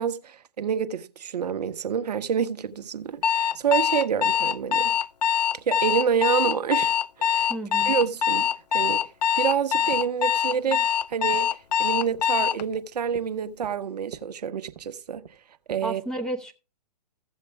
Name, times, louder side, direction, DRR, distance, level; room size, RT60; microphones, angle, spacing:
voice 1, 0.0-4.9 5.7-7.5 7.8-9.0 9.4-11.5 11.8-15.2 15.7-16.0, right 7 dB, 70° right, 0.9 m, -28 dB
Alarm, 3.2-12.6, left 8 dB, 75° left, 0.4 m, -23 dB
sound 1, 4.9-15.8, right 10 dB, 40° right, 1.1 m, -49 dB
voice 2, 7.5-8.0 15.8-16.5, right 1 dB, 5° left, 0.8 m, -32 dB
15.0 x 7.4 x 3.5 m
hypercardioid pair, 135°, 21 cm